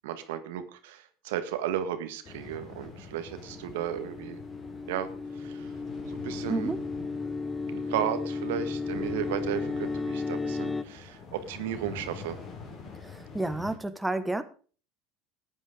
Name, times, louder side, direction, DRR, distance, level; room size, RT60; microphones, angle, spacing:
voice 1, 0.0-4.4 4.9-5.1 5.3-5.7 6.2-6.7 7.7-12.4, right 10 dB, 80° right, 9 dB, 1.6 m, -34 dB
sound 1, 2.2-13.8, left 5 dB, 45° left, 4.2 m, -46 dB
sound 2, 3.5-10.8, left 4 dB, 15° left, 0.8 m, -34 dB
voice 2, 12.9-14.4, right 2 dB, 5° right, 9 dB, 1.3 m, -31 dB
14.0 x 9.2 x 5.1 m, 0.39 s
hypercardioid pair, 80°, 0 cm